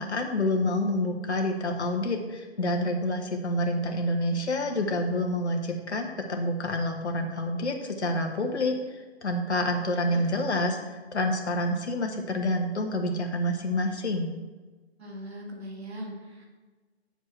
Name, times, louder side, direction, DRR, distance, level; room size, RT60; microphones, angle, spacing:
voice 1, 0.0-14.3, left 1 dB, 80° left, 3 dB, 1.1 m, -28 dB
voice 2, 15.0-16.4, equal, 65° right, -1 dB, 2.6 m, -40 dB
9.0 x 7.2 x 3.2 m, 1.3 s
figure-of-eight pair, 150°, 33 cm